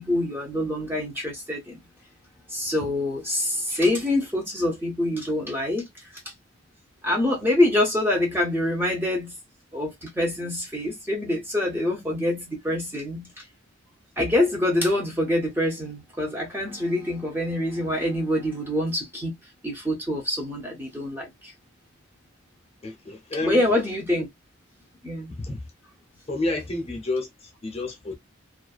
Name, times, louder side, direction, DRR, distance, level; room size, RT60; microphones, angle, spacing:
voice 1, 0.0-1.8 2.5-5.8 7.0-9.4 9.7-13.4 14.2-19.4 19.6-21.5 23.4-24.3 25.0-25.3, left 1 dB, 10° right, 0.7 m, -25 dB
voice 2, 22.8-23.6 25.3-25.6 26.3-28.1, left 2 dB, 30° left, 0.7 m, -30 dB
2.5 x 2.2 x 2.3 m
head